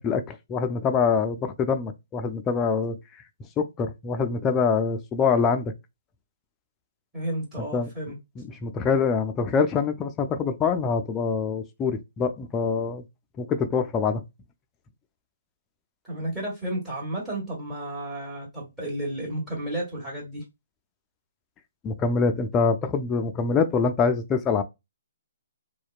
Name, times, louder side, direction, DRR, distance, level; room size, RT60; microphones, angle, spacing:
voice 1, 0.0-3.0 3.6-5.7 7.7-7.9 8.4-13.0 13.4-14.2 21.8-24.6, left 5 dB, 20° left, 0.4 m, -25 dB
voice 2, 7.1-8.2 16.0-20.4, right 1 dB, 10° right, 1.5 m, -32 dB
2.7 x 2.1 x 2.3 m
hypercardioid pair, 140°, 0 cm